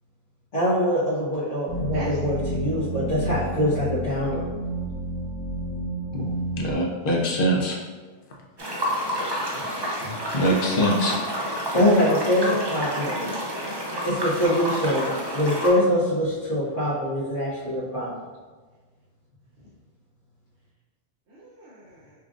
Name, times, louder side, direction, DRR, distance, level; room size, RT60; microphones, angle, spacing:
voice 1, 0.5-4.4 10.0-10.1 11.7-13.3 14.0-18.1, left 1 dB, 75° left, -11 dB, 1.2 m, -24 dB
sound 1, 1.7-6.7, right 1 dB, 10° right, 1.2 m, -30 dB
voice 2, 6.6-7.7 10.3-11.2, equal, 55° left, -2 dB, 0.8 m, -23 dB
sound 2, 8.6-15.7, equal, 30° right, 0.5 m, -29 dB
voice 3, 12.4-13.3 13.6-14.1 21.3-22.1, right 1 dB, 75° right, -6 dB, 1.0 m, -36 dB
5.8 x 2.4 x 2.4 m, 1.4 s
omnidirectional pair, 1.2 m